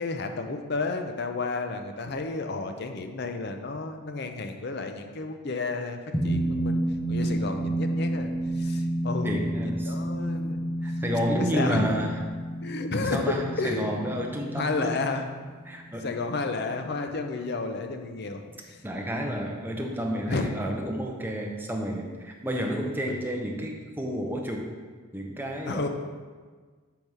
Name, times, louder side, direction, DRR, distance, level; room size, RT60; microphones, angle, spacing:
voice 1, 0.0-6.8 7.1-10.6 11.3-11.9 12.6-14.1 14.5-15.3 16.0-18.4 18.7-18.8 20.3-20.5 23.1-23.2 25.7-25.9, left 3 dB, 50° left, 6 dB, 0.5 m, -31 dB
sound 1, 6.1-16.8, right 1 dB, 25° left, 0.8 m, -30 dB
voice 2, 9.2-9.9 10.8-12.3 13.1-15.0 15.7-16.1 18.8-24.7 25.1-25.9, equal, 10° right, 1 dB, 0.6 m, -30 dB
5.1 x 4.7 x 5.5 m, 1.5 s
head